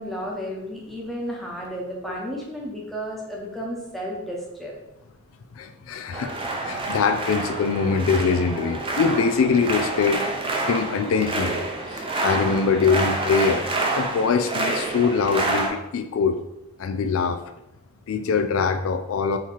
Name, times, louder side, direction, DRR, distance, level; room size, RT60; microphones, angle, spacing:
voice 1, 0.0-4.7, equal, ahead, -3 dB, 0.8 m, -32 dB
voice 2, 5.6-10.2 10.7-11.6 11.9-16.4 16.8-17.4 18.1-19.4, left 5 dB, 70° left, 9 dB, 0.3 m, -23 dB
sound 1, 6.1-15.7, right 2 dB, 25° right, 0.5 m, -28 dB
3.8 x 2.9 x 4.5 m, 0.90 s
head